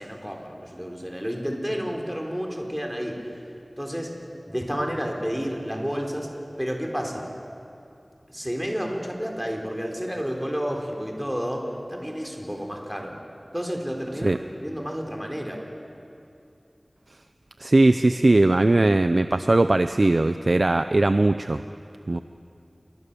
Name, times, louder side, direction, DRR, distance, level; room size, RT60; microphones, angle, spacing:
voice 1, 0.0-3.2 3.8-4.1 4.5-6.3 6.6-7.3 8.3-13.1 13.5-15.6, equal, 5° right, 1 dB, 4.1 m, -30 dB
voice 2, 17.6-21.6 22.1-22.2, right 2 dB, 65° right, 9 dB, 0.6 m, -19 dB
28.5 x 23.0 x 6.9 m, 2.6 s
wide cardioid pair, 45°, 0 cm